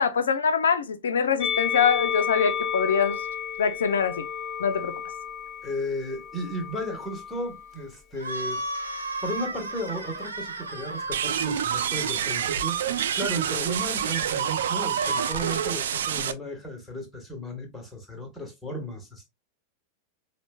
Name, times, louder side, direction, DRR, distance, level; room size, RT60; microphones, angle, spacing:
voice 1, 0.0-3.2 3.6-4.3 4.6-5.0, left 6 dB, 65° left, 0.4 m, -24 dB
Musical instrument, 1.4-7.8 8.6-9.6, left 8 dB, 20° left, 1.0 m, -32 dB
voice 2, 5.6-8.6 9.2-19.3, equal, 5° left, 1.2 m, -34 dB
sound 1, 8.2-11.6 14.8-15.7, right 2 dB, 75° right, 0.7 m, -34 dB
sound 2, 11.1-16.3, right 9 dB, 60° right, 0.3 m, -27 dB
4.9 x 2.1 x 2.3 m
figure-of-eight pair, 90°, 0 cm